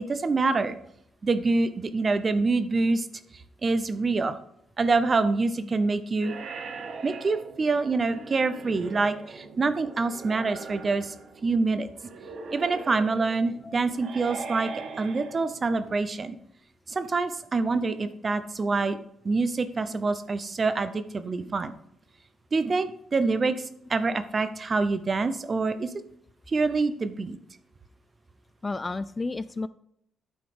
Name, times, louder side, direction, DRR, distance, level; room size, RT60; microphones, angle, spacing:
voice 1, 0.1-0.8 1.2-3.1 3.6-4.3 4.8-6.3 7.0-11.1 11.4-11.9 12.5-14.7 15.0-16.4 16.9-19.0 19.2-21.7 22.5-23.6 23.9-25.9 26.5-27.4, right 3 dB, 35° right, 12 dB, 0.7 m, -26 dB
sound 1, 6.2-16.0, right 4 dB, 60° right, 1.0 m, -41 dB
voice 2, 28.6-29.7, left 3 dB, 25° left, 15 dB, 0.3 m, -32 dB
9.3 x 4.0 x 5.0 m, 0.73 s
cardioid pair, 90°, 0 cm